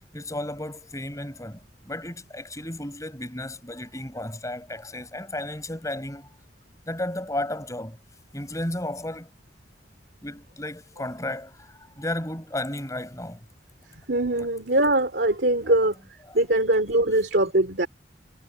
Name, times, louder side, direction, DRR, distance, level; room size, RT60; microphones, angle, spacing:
voice 1, 0.1-6.3 6.9-8.0 8.3-9.3 10.2-13.4 14.4-14.5 16.3-16.4, left 1 dB, 20° left, 5.8 m, -33 dB
voice 2, 14.1-16.0 16.3-17.9, right 1 dB, 65° right, 2.9 m, -22 dB
head